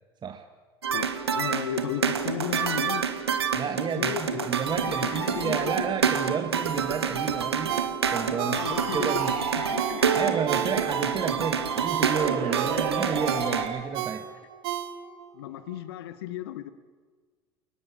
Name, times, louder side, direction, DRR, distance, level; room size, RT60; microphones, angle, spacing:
sound 1, 0.8-13.7, right 7 dB, 85° right, 1.8 m, -28 dB
voice 1, 1.3-3.1 3.9-4.5 4.8-5.7 8.4-9.2 9.5-10.4 15.3-16.7, left 12 dB, 70° left, 14 dB, 1.4 m, -34 dB
voice 2, 3.5-7.8 8.1-9.3 10.2-14.3, right 6 dB, 35° right, 6 dB, 2.1 m, -31 dB
Ringtone, 7.7-11.1 11.5-15.3 15.7-15.8, right 11 dB, 70° right, 2.2 m, -34 dB
sound 2, 8.5-13.8, right 5 dB, 55° right, 4.9 m, -34 dB
29.5 x 18.5 x 8.7 m, 1.5 s
hypercardioid pair, 70°, 13 cm